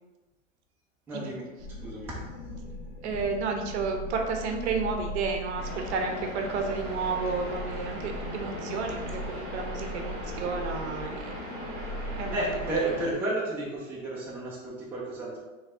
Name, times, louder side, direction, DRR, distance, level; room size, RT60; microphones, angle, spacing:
voice 1, 1.1-1.4 1.8-2.2 12.3-15.4, right 2 dB, 5° right, -6 dB, 0.5 m, -32 dB
sound 1, 1.6-13.1, left 1 dB, 35° left, 0.9 m, -39 dB
voice 2, 3.0-11.4 12.2-12.9, right 4 dB, 55° right, 4 dB, 0.8 m, -32 dB
sound 2, 5.6-13.0, equal, 25° right, 1.4 m, -39 dB
3.3 x 3.3 x 3.7 m, 1.2 s
hypercardioid pair, 140°, 40 cm